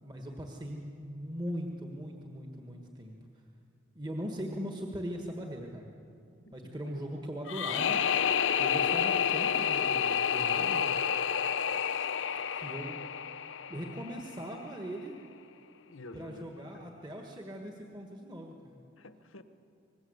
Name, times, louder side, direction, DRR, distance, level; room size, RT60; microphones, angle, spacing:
voice 1, 0.0-3.1 3.9-5.9 6.5-8.0 8.6-10.9 12.5-13.0 13.7-15.2 16.1-18.8, equal, 20° right, 1 dB, 1.5 m, -40 dB
sound 1, 7.5-14.4, left 8 dB, 65° left, 0.6 m, -29 dB
voice 2, 15.9-17.0 19.0-19.4, left 2 dB, 85° left, 10 dB, 1.2 m, -50 dB
26.0 x 20.0 x 8.0 m, 2.6 s
head